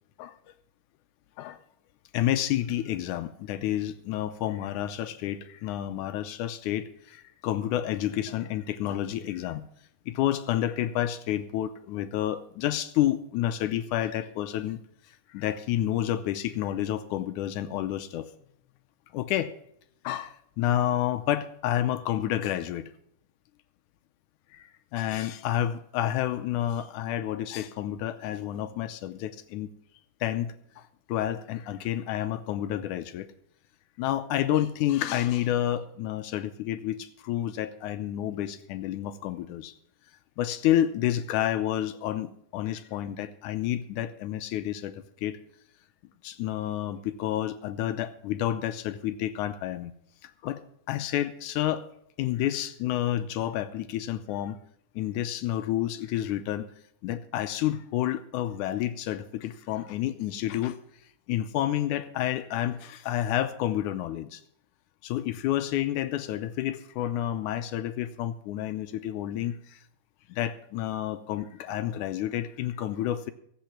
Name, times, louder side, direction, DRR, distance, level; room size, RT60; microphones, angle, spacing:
voice 1, 2.1-9.7 10.1-14.8 15.3-18.3 19.1-19.5 20.0-22.9 24.5-24.7 24.9-29.7 30.2-30.8 31.1-33.3 34.0-39.7 40.4-45.4 46.2-49.9 50.2-50.6 50.9-51.8 52.2-54.6 55.0-56.7 57.0-60.8 61.3-64.4 65.0-69.8 70.3-73.3, left 12 dB, 80° left, 11 dB, 2.1 m, -29 dB
16.0 x 8.6 x 6.0 m, 0.70 s
omnidirectional pair, 3.6 m